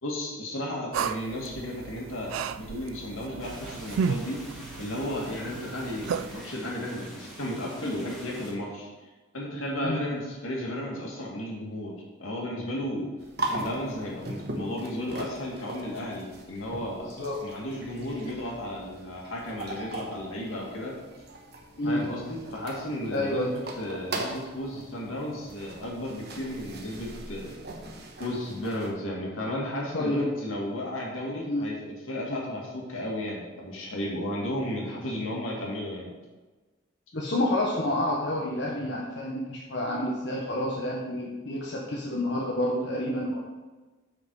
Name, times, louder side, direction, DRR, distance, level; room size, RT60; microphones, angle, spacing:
voice 1, 0.0-4.4 4.8-8.9 9.3-11.9 12.2-13.1 13.4-17.1 17.4-20.9 21.8-27.6 28.2-36.1, left 1 dB, 85° left, -2 dB, 2.3 m, -34 dB
sound 1, 0.9-6.4, right 6 dB, 80° right, 0.3 m, -34 dB
sound 2, 3.4-8.5, equal, ahead, 1.7 m, -45 dB
sound 3, 13.2-28.9, right 2 dB, 50° right, 1.1 m, -40 dB
voice 2, 17.0-17.4 21.8-22.0 23.1-23.5 29.9-30.3 31.4-31.7 37.1-43.4, left 1 dB, 60° left, -3 dB, 1.1 m, -29 dB
7.5 x 6.0 x 4.8 m, 1.2 s
head